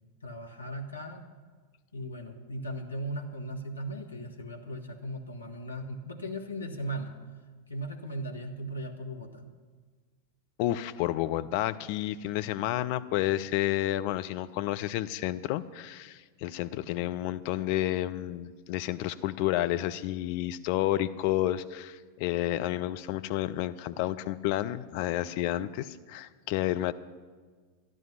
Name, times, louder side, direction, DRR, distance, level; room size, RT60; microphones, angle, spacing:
voice 1, 0.2-1.2 1.9-7.1 7.7-9.5, right 1 dB, 80° left, 2 dB, 1.3 m, -37 dB
voice 2, 10.6-26.9, left 14 dB, 45° left, 10 dB, 0.5 m, -30 dB
12.5 x 10.5 x 5.7 m, 1.5 s
figure-of-eight pair, 90°, 0 cm